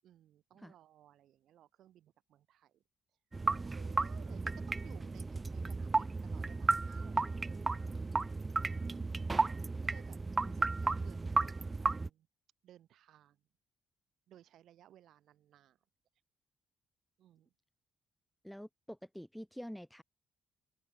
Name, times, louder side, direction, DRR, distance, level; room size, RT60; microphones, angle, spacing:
voice 1, 0.0-2.8 3.5-8.1 8.7-9.3 9.8-11.5 11.8-12.3 12.6-13.4 14.3-15.8 17.2-17.5, right 12 dB, 70° right, 6.6 m, -61 dB
sound 1, 3.3-12.1, right 3 dB, 20° right, 0.5 m, -34 dB
voice 2, 18.4-20.0, equal, ahead, 2.1 m, -47 dB
open air
cardioid pair, 165°, 0 cm